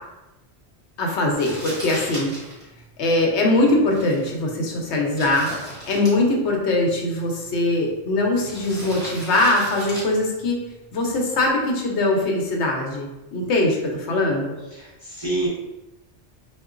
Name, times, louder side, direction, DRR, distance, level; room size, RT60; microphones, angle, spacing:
voice 1, 1.0-2.3 3.0-5.5 5.9-10.6 10.9-14.6, left 2 dB, 80° left, 0 dB, 0.9 m, -21 dB
Crumpling crinkling, 1.3-11.5, equal, 5° left, 1.1 m, -39 dB
voice 2, 13.8-14.2 14.7-15.5, right 2 dB, 30° right, -8 dB, 0.6 m, -29 dB
3.6 x 2.4 x 2.4 m, 1.0 s
omnidirectional pair, 1.2 m